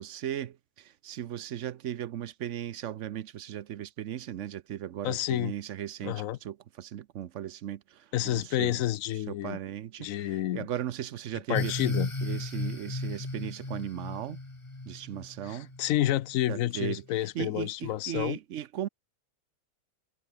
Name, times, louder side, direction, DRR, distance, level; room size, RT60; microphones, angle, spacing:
voice 1, 0.0-8.8 9.3-11.9 12.2-14.4 14.9-15.7 16.5-18.9, right 11 dB, 70° right, 1.0 m, -37 dB
voice 2, 5.0-5.5 6.0-6.4 8.1-9.6 10.0-10.7 11.5-12.1 15.4-18.4, left 13 dB, 85° left, 1.0 m, -29 dB
sound 1, 11.5-16.1, left 2 dB, 20° left, 2.0 m, -35 dB
omnidirectional pair, 1.4 m